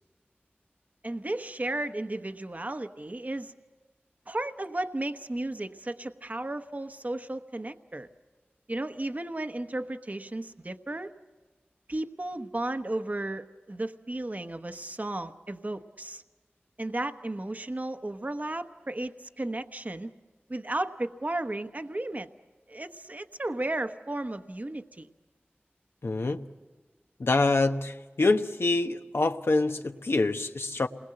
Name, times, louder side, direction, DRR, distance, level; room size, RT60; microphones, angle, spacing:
voice 1, 1.0-3.5 4.3-8.1 8.7-11.1 11.9-16.2 16.8-20.1 20.5-22.3 22.7-25.1, right 1 dB, 40° right, 1.1 m, -34 dB
voice 2, 26.0-26.4 27.2-30.9, left 3 dB, 80° left, 1.1 m, -26 dB
28.0 x 21.5 x 7.7 m
wide cardioid pair, 50°, 4 cm